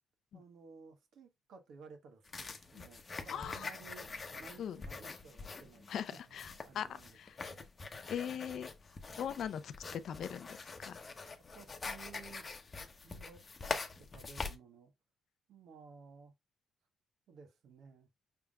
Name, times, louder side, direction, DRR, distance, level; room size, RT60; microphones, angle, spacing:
voice 1, 0.3-4.1 4.4-5.9 6.1-7.7 8.3-8.6 11.5-12.5 13.0-14.9 15.5-16.3 17.3-18.1, right 5 dB, 70° right, 1.3 m, -56 dB
sound 1, 2.3-14.6, left 4 dB, 35° left, 0.8 m, -45 dB
voice 2, 3.3-3.7 4.6-4.8 5.9-6.9 7.2-7.3 8.1-8.7 9.2-11.0, left 8 dB, 65° left, 0.5 m, -40 dB
5.7 x 3.5 x 2.3 m
cardioid pair, 90°, 0 cm